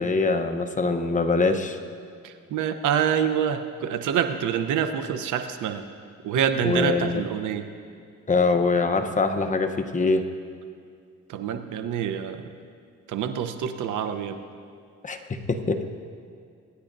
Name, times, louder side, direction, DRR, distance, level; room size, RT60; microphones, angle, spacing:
voice 1, 0.0-1.8 6.6-7.2 8.3-10.2 15.0-15.2 15.5-15.8, left 3 dB, 25° left, 6 dB, 0.9 m, -23 dB
voice 2, 2.2-5.8 6.2-7.7 11.3-12.5 13.1-14.4, right 8 dB, 80° right, 8 dB, 0.9 m, -26 dB
25.0 x 9.9 x 2.6 m, 2.3 s
cardioid pair, 90°, 30 cm